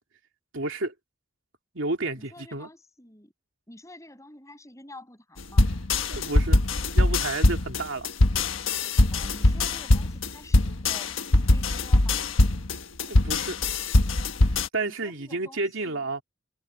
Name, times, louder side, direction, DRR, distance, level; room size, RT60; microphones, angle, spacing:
voice 1, 0.5-0.9 1.7-2.7 6.1-6.6 6.9-8.1 13.1-13.6 14.7-16.2, right 2 dB, 70° right, 2.9 m, -31 dB
voice 2, 2.2-3.3 3.7-5.7 9.1-11.1 11.5-12.3 14.8-16.1, left 1 dB, 15° left, 6.9 m, -48 dB
sound 1, 5.6-14.7, left 2 dB, 75° left, 1.3 m, -22 dB
head